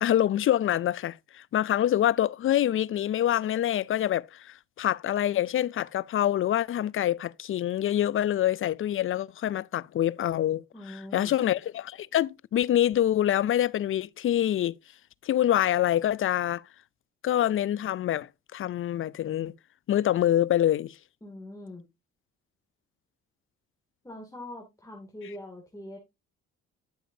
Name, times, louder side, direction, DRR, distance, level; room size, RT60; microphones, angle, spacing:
voice 1, 0.0-14.7 15.2-16.6 17.2-19.5 19.9-21.0, left 11 dB, 45° left, 0.4 m, -26 dB
voice 2, 10.7-11.3 21.2-21.8 24.0-26.0, left 1 dB, 10° left, 2.5 m, -42 dB
11.0 x 7.1 x 2.7 m
cardioid pair, 90°, 30 cm